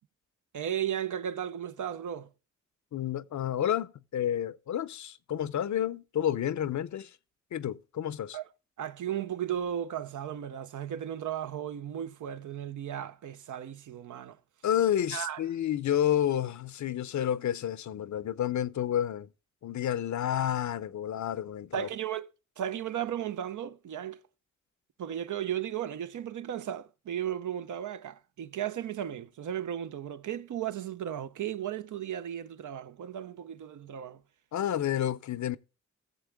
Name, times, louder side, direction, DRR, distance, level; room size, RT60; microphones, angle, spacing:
voice 1, 0.5-2.3 8.3-8.5 8.8-14.4 15.1-15.4 21.7-22.3 22.6-24.2 25.0-34.2, right 10 dB, 85° right, 0.6 m, -35 dB
voice 2, 2.9-7.1 7.5-8.4 14.6-19.3 19.6-21.9 34.5-35.6, left 10 dB, 70° left, 0.6 m, -30 dB
17.0 x 7.1 x 3.4 m
cardioid pair, 65°, 30 cm